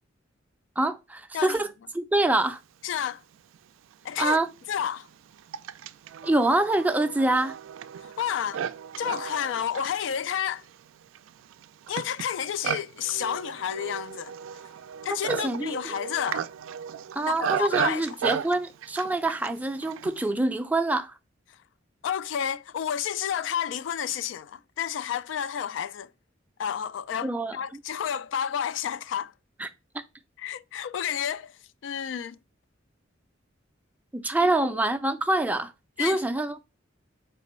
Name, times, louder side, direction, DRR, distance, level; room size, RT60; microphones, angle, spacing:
voice 1, 0.8-1.7 1.9-2.6 4.2-4.5 6.2-7.6 15.3-15.8 17.2-21.1 27.2-27.6 29.6-29.7 34.1-35.7 36.0-36.6, right 2 dB, 10° right, 0.4 m, -25 dB
voice 2, 2.8-3.2 4.0-4.4 4.7-5.1 8.0-8.6 9.0-10.6 11.9-14.3 15.0-16.5 17.3-18.2 22.0-26.1 26.6-29.3 30.4-31.5 31.8-32.4 34.4-34.8 36.0-36.2, left 9 dB, 65° left, 0.3 m, -30 dB
Livestock farm animals working animals, 3.5-3.6 4.4-20.3, right 8 dB, 90° right, 0.3 m, -35 dB
4.4 x 3.3 x 3.0 m
head